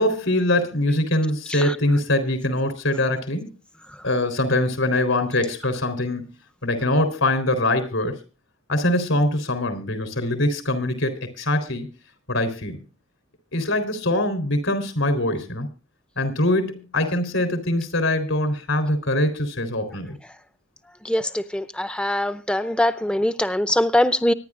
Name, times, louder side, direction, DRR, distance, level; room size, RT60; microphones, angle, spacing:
voice 1, 0.0-3.5 4.0-6.3 6.6-8.2 8.7-11.9 12.3-12.8 13.5-15.7 16.2-20.2, left 1 dB, 70° left, 10 dB, 3.8 m, -23 dB
voice 2, 21.5-24.3, left 1 dB, 5° left, 11 dB, 0.6 m, -22 dB
25.0 x 10.5 x 2.5 m, 0.32 s
head